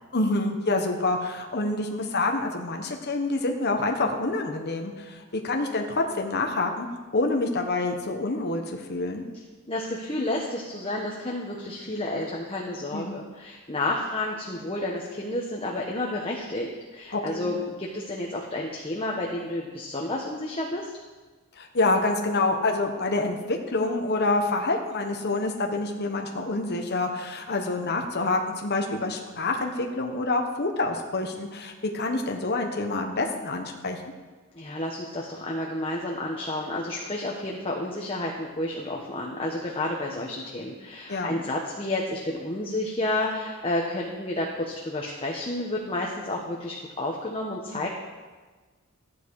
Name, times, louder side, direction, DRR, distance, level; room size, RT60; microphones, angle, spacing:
voice 1, 0.1-9.2 12.9-13.2 17.1-17.5 21.5-34.1 41.1-41.4 47.7-47.9, left 2 dB, 50° left, 2 dB, 1.2 m, -27 dB
voice 2, 9.7-20.9 34.5-47.9, left 1 dB, 25° left, -2 dB, 1.3 m, -31 dB
14.0 x 9.3 x 4.8 m, 1.3 s
head